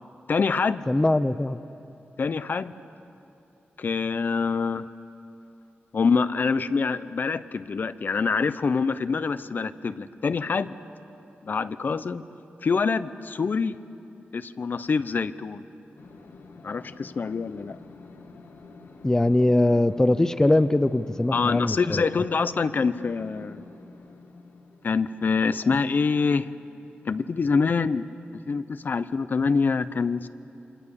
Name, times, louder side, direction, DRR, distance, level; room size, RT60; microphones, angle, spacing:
voice 1, 0.3-0.8 2.2-2.8 3.8-4.9 5.9-10.7 11.4-12.2 12.6-13.8 14.3-15.6 16.6-17.8 21.3-23.6 24.8-26.5 27.1-28.0 28.5-30.3, left 5 dB, 50° left, 14 dB, 0.7 m, -25 dB
voice 2, 0.9-1.6 19.0-22.1, left 1 dB, 15° left, 13 dB, 0.5 m, -21 dB
sound 1, 16.0-27.0, left 3 dB, 80° left, 2.2 m, -48 dB
27.5 x 26.5 x 7.0 m, 2.9 s
wide cardioid pair, 135°, 4 cm